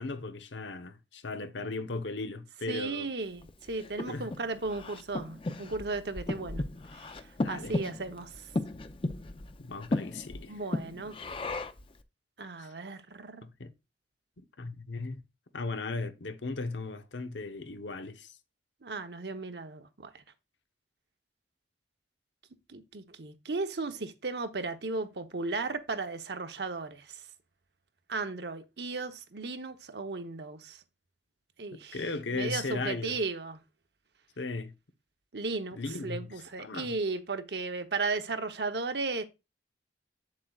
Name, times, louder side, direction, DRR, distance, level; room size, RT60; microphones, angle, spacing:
voice 1, 0.0-3.1 4.1-4.3 7.4-7.8 9.6-10.6 12.6-12.8 13.4-13.7 14.4-15.2 15.5-18.4 31.9-33.2 34.4-34.7 35.7-37.0, left 3 dB, 85° left, 0.9 m, -37 dB
voice 2, 2.7-6.6 6.9-7.2 7.5-8.5 10.5-11.1 12.4-13.4 18.8-20.2 22.7-27.2 28.1-30.8 31.6-32.0 32.3-33.6 35.3-39.2, right 3 dB, 65° right, 0.9 m, -35 dB
Breathing, 3.4-11.9, left 2 dB, 30° left, 0.6 m, -36 dB
7.8 x 7.4 x 2.4 m
head